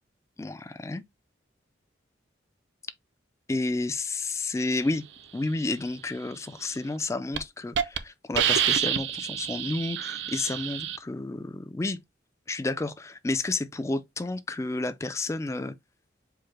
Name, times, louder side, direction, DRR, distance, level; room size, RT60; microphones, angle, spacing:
voice 1, 0.4-1.0 3.5-5.0 5.3-12.0 12.5-15.7, left 2 dB, 15° left, 0.3 m, -31 dB
Hiss, 6.8-7.0 7.4-7.5 7.8-8.0 8.4-11.0, right 9 dB, 70° right, 0.5 m, -27 dB
4.7 x 2.1 x 4.7 m
head